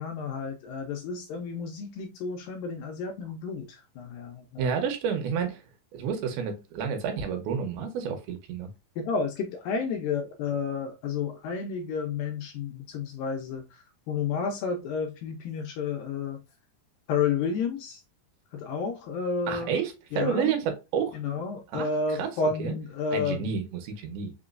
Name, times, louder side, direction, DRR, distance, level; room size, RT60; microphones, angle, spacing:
voice 1, 0.0-4.8 9.0-13.6 14.1-16.4 17.1-18.0 18.5-19.8 20.1-20.5 21.2-23.5, left 5 dB, 80° left, 2.1 m, -31 dB
voice 2, 4.6-5.6 5.9-8.7 19.5-21.1 21.7-22.3 22.6-22.7 23.1-24.3, right 6 dB, 75° right, 2.6 m, -30 dB
5.8 x 3.0 x 2.4 m
omnidirectional pair, 4.6 m